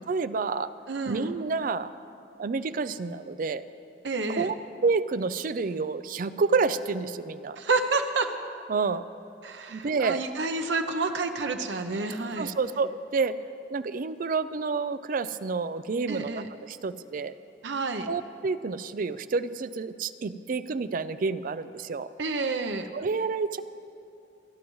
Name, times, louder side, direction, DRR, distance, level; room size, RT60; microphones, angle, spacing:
voice 1, 0.1-0.7 1.1-1.9 2.4-3.6 4.4-7.6 8.7-9.0 9.7-10.2 12.4-13.4 13.7-17.3 18.1-22.1 22.9-23.6, right 4 dB, 50° right, 13 dB, 0.4 m, -29 dB
voice 2, 0.9-1.3 4.0-4.5 7.6-8.3 9.4-12.5 16.1-16.5 17.6-18.1 22.2-22.9, right 3 dB, 90° right, 6 dB, 0.7 m, -29 dB
28.5 x 10.5 x 3.1 m, 2.7 s
head